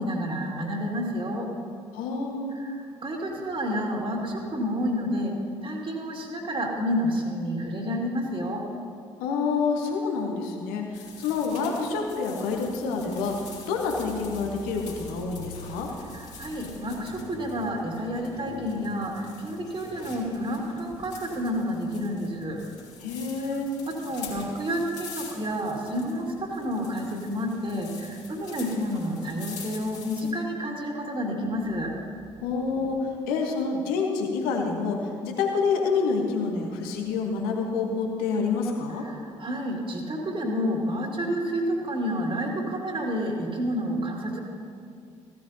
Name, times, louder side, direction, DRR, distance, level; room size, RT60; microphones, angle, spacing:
voice 1, 0.0-1.5 2.5-5.4 5.6-8.6 16.1-22.6 23.5-23.6 23.9-31.9 39.0-44.4, equal, 30° right, 0 dB, 2.2 m, -30 dB
voice 2, 1.9-2.6 9.2-13.4 13.6-15.9 23.0-23.7 32.4-33.0 33.3-39.0, left 4 dB, 65° left, 2 dB, 1.3 m, -28 dB
sound 1, 10.9-30.3, left 4 dB, 50° left, 3.0 m, -44 dB
15.5 x 13.0 x 2.8 m, 2.3 s
figure-of-eight pair, 45°, 16 cm